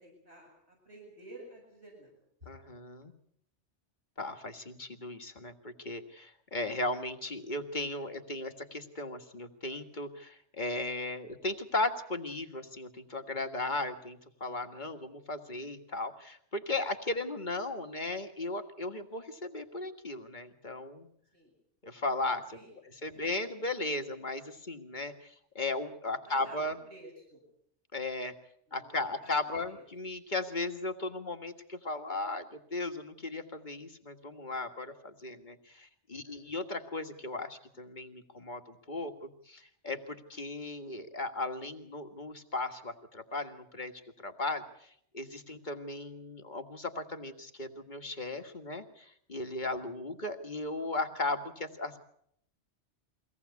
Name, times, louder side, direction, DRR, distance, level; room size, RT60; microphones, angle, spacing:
voice 1, 0.0-2.1 21.3-21.5 22.5-22.7 23.1-23.2 26.3-26.6 26.9-27.4 28.7-29.3 29.7-29.8 36.2-36.5 49.6-49.7, right 1 dB, 70° right, -1 dB, 8.1 m, -52 dB
voice 2, 2.5-3.1 4.2-21.1 21.8-22.6 22.8-26.8 27.9-28.3 28.7-43.9 44.2-44.9 45.1-52.0, left 2 dB, 40° left, 6 dB, 1.9 m, -36 dB
23.5 x 18.0 x 8.4 m, 0.70 s
omnidirectional pair, 1.2 m